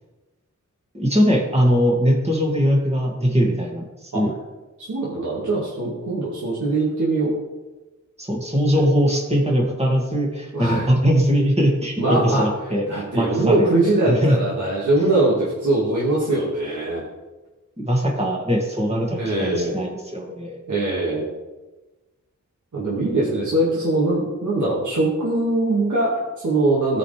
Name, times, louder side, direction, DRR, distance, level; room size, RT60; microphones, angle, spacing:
voice 1, 0.9-3.8 4.1-4.3 8.2-13.7 14.0-14.4 17.8-20.6, equal, 20° right, -1 dB, 2.3 m, -21 dB
voice 2, 4.8-7.3 8.7-8.8 10.5-10.9 12.0-12.5 12.9-17.0 19.1-19.8 20.7-21.3 22.7-27.0, right 2 dB, 75° right, -6 dB, 2.1 m, -22 dB
14.5 x 5.1 x 3.4 m, 1.1 s
cardioid pair, 50°, 30 cm